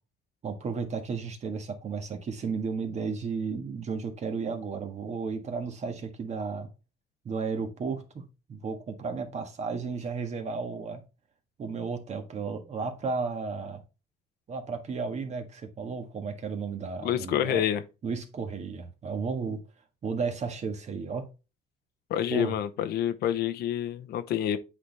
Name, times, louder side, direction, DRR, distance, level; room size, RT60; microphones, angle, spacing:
voice 1, 0.4-6.7 7.2-11.0 11.6-13.8 14.5-17.6 18.0-19.6 20.0-21.3 22.3-22.5, right 5 dB, 40° right, 1.6 m, -33 dB
voice 2, 17.0-17.8 22.1-24.6, left 11 dB, 70° left, 0.8 m, -28 dB
8.2 x 4.1 x 3.4 m
cardioid pair, 110°, 17 cm